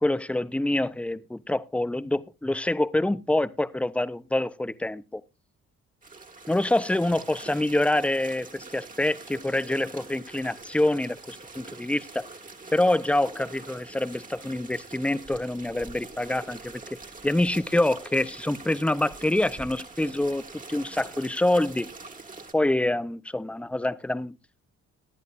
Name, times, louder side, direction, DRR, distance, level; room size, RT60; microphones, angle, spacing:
voice 1, 0.0-5.2 6.5-12.2 12.7-16.8 17.2-21.9 22.5-24.4, left 1 dB, 5° left, 0.5 m, -26 dB
sound 1, 6.0-22.5, right 3 dB, 25° right, 2.0 m, -44 dB
18.5 x 10.5 x 2.5 m
cardioid pair, 90°, 30 cm